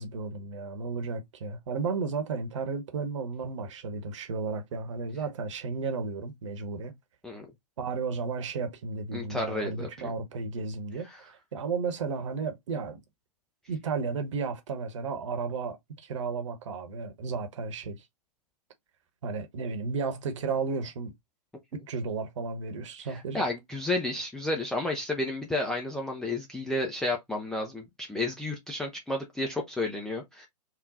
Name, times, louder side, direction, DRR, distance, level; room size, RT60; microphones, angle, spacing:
voice 1, 0.0-6.9 7.8-13.0 13.7-18.0 19.2-21.1 21.7-23.5, right 4 dB, 45° right, 1.0 m, -33 dB
voice 2, 9.1-10.1 11.1-11.2 23.3-27.8 28.1-30.5, left 2 dB, 5° left, 0.4 m, -31 dB
3.7 x 2.3 x 4.0 m
figure-of-eight pair, 120°, 21 cm